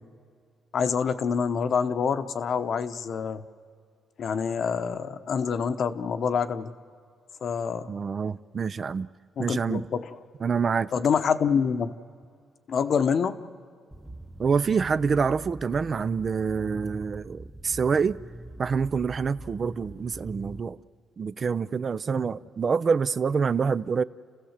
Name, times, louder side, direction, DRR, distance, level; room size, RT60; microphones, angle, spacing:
voice 1, 0.7-3.4 4.2-6.7 7.4-7.9 9.4-10.1 10.9-11.9 12.7-13.4, left 6 dB, 60° left, 0.9 m, -26 dB
voice 2, 7.9-9.1 9.4-9.9 10.4-10.9 14.4-18.2 18.6-20.8 21.2-24.0, right 5 dB, 45° right, 0.5 m, -26 dB
sound 1, 13.9-20.6, right 1 dB, 5° right, 0.8 m, -43 dB
30.0 x 15.5 x 7.3 m
cardioid pair, 90°, 0 cm